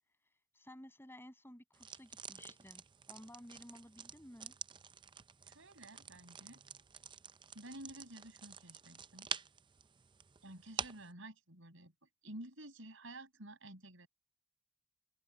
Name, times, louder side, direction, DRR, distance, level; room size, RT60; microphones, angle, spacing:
voice 1, 0.5-4.5, left 1 dB, 10° left, 7.2 m, -55 dB
sound 1, 1.7-11.1, right 7 dB, 25° right, 0.5 m, -48 dB
voice 2, 5.4-6.6 7.5-9.3 10.4-11.9 12.2-14.1, right 1 dB, 65° right, 6.8 m, -51 dB
open air
head